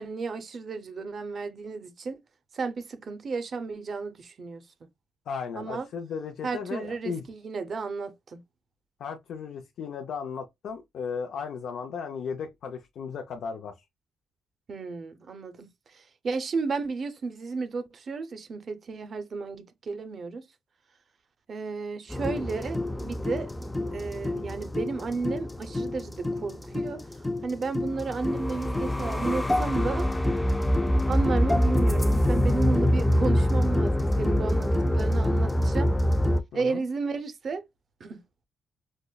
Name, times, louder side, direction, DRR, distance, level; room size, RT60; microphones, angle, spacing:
voice 1, 0.0-2.2 2.5-4.6 5.6-5.9 6.4-8.4 14.7-20.4 21.5-23.5 23.9-27.0 27.4-30.1 31.1-35.9 36.5-37.6 38.0-38.2, right 4 dB, 45° right, 0.5 m, -33 dB
voice 2, 5.3-7.2 9.0-13.7 36.5-36.8, left 6 dB, 70° left, 0.5 m, -35 dB
sound 1, 22.1-36.4, left 1 dB, 10° left, 0.3 m, -25 dB
5.1 x 2.0 x 2.2 m
cardioid pair, 90°, 0 cm